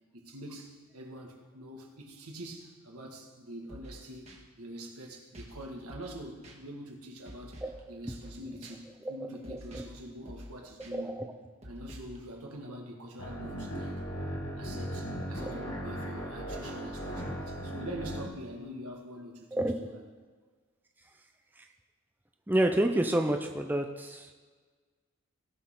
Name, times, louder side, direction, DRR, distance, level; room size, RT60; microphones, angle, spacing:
voice 1, 0.1-4.3 4.6-11.2 11.6-14.0 14.5-20.0, right 1 dB, 90° right, 1 dB, 1.9 m, -44 dB
sound 1, 3.7-4.0 4.3-4.4 5.3-5.6 5.9-6.2 6.4-6.6 7.2-7.8 8.1-8.4 8.6-8.7 9.4-10.0 10.2-10.5 10.8-10.9 11.6-12.2, equal, 30° right, 1.6 m, -47 dB
voice 2, 7.6-8.0 9.5-9.8 10.9-11.3 15.4-15.5 19.5-19.8 22.5-24.3, right 1 dB, 10° right, 4 dB, 0.5 m, -29 dB
sound 2, 13.2-18.3, equal, 65° left, 2.0 m, -37 dB
17.5 x 6.5 x 3.9 m, 1.5 s
head